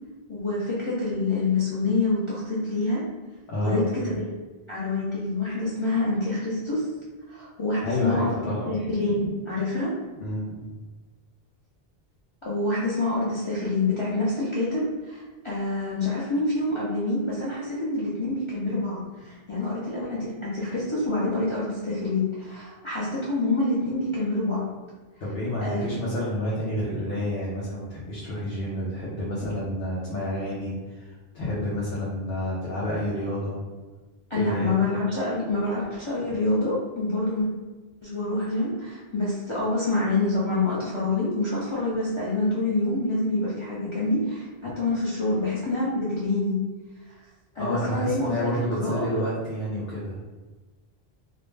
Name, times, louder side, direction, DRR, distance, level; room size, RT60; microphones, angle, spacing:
voice 1, 0.3-3.0 3.6-4.2 4.7-6.9 7.3-9.9 12.4-24.6 25.6-25.9 34.3-37.5 38.0-46.6 47.5-49.2, left 2 dB, 35° left, -8 dB, 0.5 m, -27 dB
voice 2, 3.5-3.8 7.8-8.7 10.2-10.6 25.2-33.6 34.3-34.8 47.5-50.2, left 1 dB, 75° left, -7 dB, 0.9 m, -29 dB
2.4 x 2.1 x 3.1 m, 1.3 s
omnidirectional pair, 1.0 m